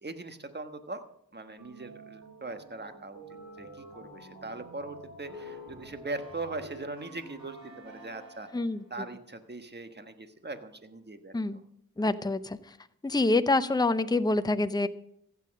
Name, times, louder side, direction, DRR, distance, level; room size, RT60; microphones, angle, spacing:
voice 1, 0.0-1.0 1.3-3.2 3.6-8.5 8.9-11.3, right 2 dB, 30° right, 8 dB, 1.5 m, -40 dB
sound 1, 1.6-8.9, right 1 dB, 85° right, 3.7 m, -48 dB
voice 2, 8.5-8.8 11.3-11.6 12.0-12.8 13.0-14.9, left 2 dB, 10° left, 12 dB, 0.7 m, -26 dB
15.5 x 8.5 x 6.5 m, 0.72 s
cardioid pair, 55°, 34 cm